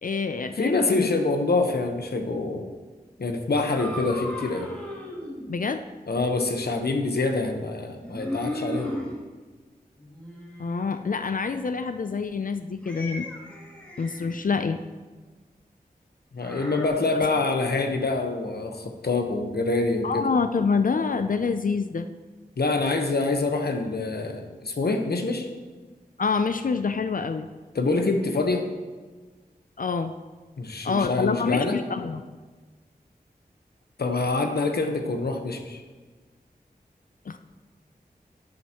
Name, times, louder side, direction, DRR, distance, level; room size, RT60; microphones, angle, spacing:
voice 1, 0.0-1.1 5.5-5.8 10.6-13.3 14.0-14.8 20.0-22.1 26.2-27.5 29.8-30.1 30.8-32.2 37.3-37.4, left 5 dB, 55° left, 9 dB, 0.4 m, -26 dB
voice 2, 0.6-2.7 3.2-4.7 6.1-9.0 16.3-20.3 22.6-25.5 27.7-28.7 30.6-31.8 34.0-35.8, left 3 dB, 80° left, 5 dB, 1.0 m, -26 dB
sound 1, 3.7-5.5 8.0-9.1 10.0-10.9 12.8-14.4 16.4-16.9, left 1 dB, 10° left, 2.3 m, -36 dB
11.0 x 10.5 x 3.0 m, 1.4 s
wide cardioid pair, 80°, 16 cm